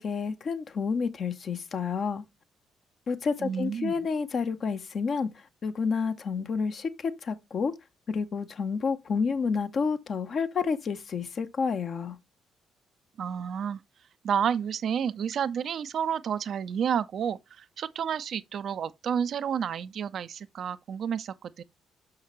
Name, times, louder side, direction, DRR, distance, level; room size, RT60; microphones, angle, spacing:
voice 1, 0.0-2.2 3.1-5.3 5.6-7.7 8.1-12.2, left 5 dB, 45° left, 0.7 m, -29 dB
voice 2, 3.4-3.9 13.2-13.8 14.2-21.6, right 8 dB, 55° right, 0.4 m, -30 dB
6.3 x 5.9 x 3.0 m
figure-of-eight pair, 40°, 0 cm